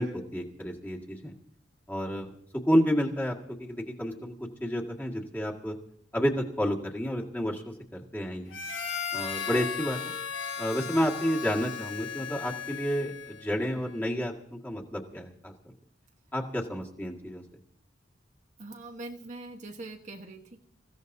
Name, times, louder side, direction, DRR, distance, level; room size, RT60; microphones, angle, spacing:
voice 1, 0.0-1.3 1.9-2.3 2.7-4.3 4.6-5.8 6.1-8.6 9.1-10.0 10.6-15.5 16.3-17.4, equal, 10° left, -2 dB, 1.8 m, -30 dB
Harmonica, 8.5-13.5, left 7 dB, 90° left, 1.6 m, -36 dB
voice 2, 18.6-20.6, right 2 dB, 40° right, 3 dB, 1.2 m, -42 dB
27.0 x 15.5 x 2.7 m, 0.70 s
head